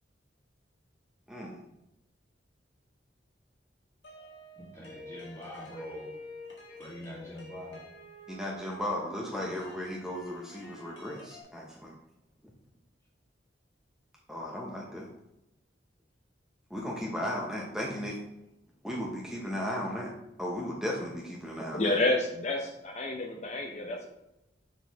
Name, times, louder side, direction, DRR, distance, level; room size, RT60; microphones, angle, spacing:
voice 1, 1.3-1.6 8.3-11.9 14.3-15.1 16.7-18.2 18.8-20.1 20.4-22.0, left 1 dB, 5° right, -3 dB, 0.7 m, -35 dB
sound 1, 4.0-11.4, left 1 dB, 75° left, 1.5 m, -49 dB
voice 2, 4.6-6.1 6.8-7.8, equal, 15° left, -5 dB, 1.8 m, -44 dB
voice 3, 21.7-24.1, left 2 dB, 40° left, 1 dB, 0.7 m, -29 dB
6.4 x 4.5 x 3.4 m, 0.90 s
head